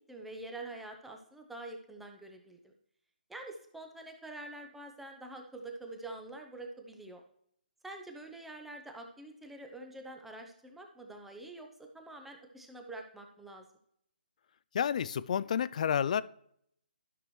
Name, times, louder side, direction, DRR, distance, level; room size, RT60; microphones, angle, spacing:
voice 1, 0.1-2.7 3.3-7.2 7.8-11.7 11.9-13.6, right 2 dB, 5° right, 3 dB, 0.8 m, -46 dB
voice 2, 14.7-16.2, left 8 dB, 45° left, 18 dB, 0.4 m, -30 dB
12.5 x 6.0 x 3.2 m, 0.69 s
hypercardioid pair, 155°, 6 cm